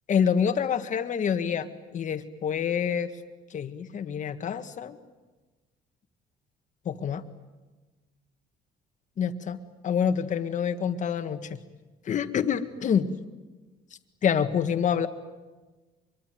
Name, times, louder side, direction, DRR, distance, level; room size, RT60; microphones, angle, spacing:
voice 1, 0.1-3.1 3.5-5.0 6.8-7.2 9.2-9.6 9.8-11.6 12.0-13.1 14.2-15.1, left 7 dB, 45° left, 8 dB, 1.8 m, -27 dB
24.5 x 23.0 x 9.3 m, 1.2 s
cardioid pair, 110°, 17 cm